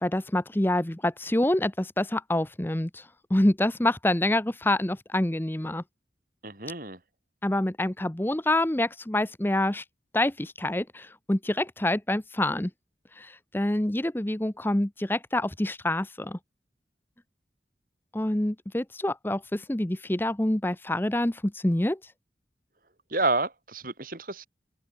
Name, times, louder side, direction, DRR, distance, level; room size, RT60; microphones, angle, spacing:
voice 1, 0.0-5.8 7.4-9.8 10.1-12.7 13.2-16.4 18.1-22.0, left 1 dB, 10° left, 0.7 m, -26 dB
voice 2, 6.4-7.0 23.1-24.5, right 3 dB, 50° right, 4.1 m, -29 dB
open air
head